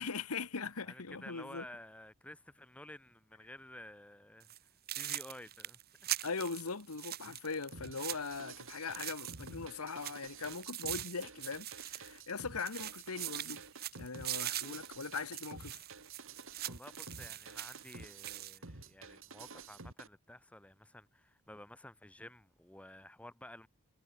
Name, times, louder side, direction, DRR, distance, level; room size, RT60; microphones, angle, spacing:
voice 1, 0.0-1.7 6.2-13.6 14.0-15.8, left 4 dB, 80° left, 1.3 m, -40 dB
voice 2, 0.9-4.5 4.9-6.2 16.6-23.7, left 1 dB, 5° left, 0.9 m, -52 dB
sound 1, 4.4-4.6 4.9-9.6 9.9-12.4 12.7-18.6, right 13 dB, 45° right, 1.2 m, -42 dB
sound 2, 7.7-20.1, right 4 dB, 60° right, 3.2 m, -51 dB
head